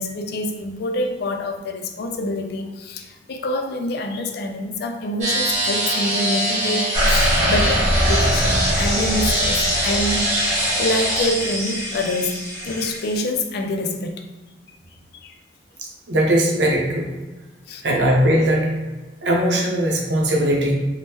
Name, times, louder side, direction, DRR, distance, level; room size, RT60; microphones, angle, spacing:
voice 1, 0.0-12.4 12.6-14.2 15.2-15.4 17.7-17.8, left 1 dB, 60° left, 5 dB, 0.4 m, -26 dB
sound 1, 5.2-11.3, right 1 dB, 45° right, 1.2 m, -23 dB
sound 2, 6.9-10.9 11.3-11.4, equal, 25° right, 0.9 m, -22 dB
sound 3, 7.9-13.2, left 1 dB, 20° left, 1.5 m, -28 dB
voice 2, 16.1-17.1 17.8-18.7 19.2-20.7, right 1 dB, 70° right, 0 dB, 0.6 m, -19 dB
3.5 x 2.1 x 2.8 m, 1.2 s
head